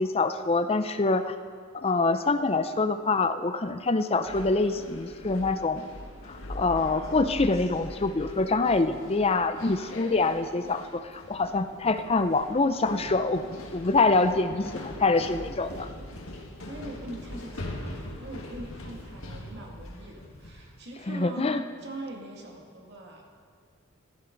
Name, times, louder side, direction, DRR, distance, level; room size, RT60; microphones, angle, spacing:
voice 1, 0.0-1.4 1.7-5.8 6.3-13.4 13.7-15.9 21.1-21.6, left 3 dB, 30° left, 9 dB, 0.5 m, -25 dB
sound 1, 4.3-20.7, left 1 dB, 85° left, 1.8 m, -41 dB
voice 2, 14.3-14.8 16.7-23.2, right 1 dB, 55° right, -1 dB, 2.3 m, -42 dB
15.5 x 13.5 x 4.0 m, 2.1 s
head